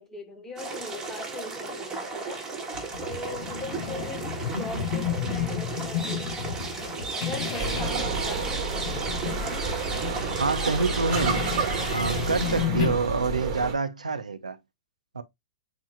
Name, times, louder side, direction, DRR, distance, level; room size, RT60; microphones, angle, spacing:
voice 1, 0.0-2.6 3.0-6.4 7.1-8.9 9.4-9.8, left 3 dB, 10° left, 1.1 m, -40 dB
sound 1, 0.6-12.6, right 3 dB, 15° right, 1.9 m, -35 dB
sound 2, 2.7-13.0, left 8 dB, 45° left, 2.4 m, -32 dB
sound 3, 7.6-13.7, right 4 dB, 45° right, 1.7 m, -30 dB
voice 2, 10.4-11.4 11.9-14.6 15.1-15.2, right 4 dB, 80° right, 0.8 m, -27 dB
8.0 x 2.9 x 2.3 m
figure-of-eight pair, 110°, 4 cm